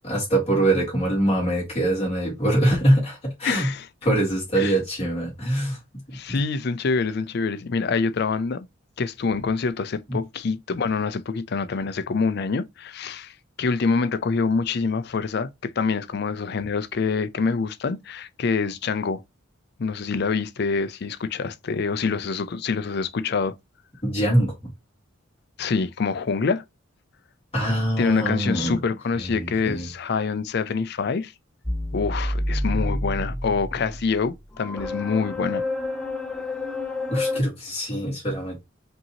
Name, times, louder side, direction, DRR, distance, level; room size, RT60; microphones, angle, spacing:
voice 1, 0.0-3.7 4.0-5.8 6.3-6.4 10.1-10.2 24.0-24.5 27.5-28.8 29.2-29.9 37.1-38.6, right 1 dB, 30° left, 2.2 m, -23 dB
voice 2, 3.4-3.9 4.6-4.8 6.1-8.7 9.0-13.3 13.6-19.2 19.8-23.5 25.6-26.6 28.0-31.3 31.9-35.6, left 4 dB, 55° left, 0.4 m, -26 dB
sound 1, 31.6-37.4, left 1 dB, 5° left, 0.6 m, -29 dB
5.2 x 2.8 x 2.7 m
head